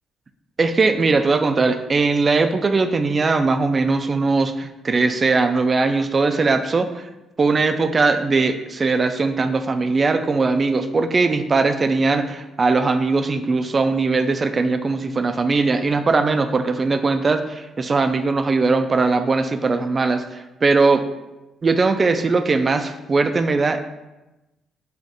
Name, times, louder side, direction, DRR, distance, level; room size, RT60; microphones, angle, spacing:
voice 1, 0.6-6.9 7.4-21.1 21.6-23.8, right 3 dB, 35° right, 8 dB, 0.3 m, -20 dB
6.0 x 2.4 x 2.6 m, 1.0 s
cardioid pair, 90°, 0 cm